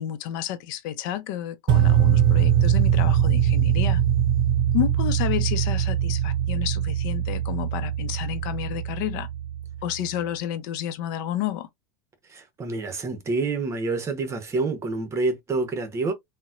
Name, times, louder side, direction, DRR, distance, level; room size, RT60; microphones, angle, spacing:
voice 1, 0.0-4.0 4.7-9.3 9.8-11.7, left 12 dB, 65° left, 0.6 m, -30 dB
sound 1, 1.7-9.8, right 10 dB, 45° right, 0.6 m, -22 dB
voice 2, 12.3-16.1, right 3 dB, 25° right, 0.9 m, -27 dB
3.9 x 2.2 x 2.4 m
supercardioid pair, 110°, 11 cm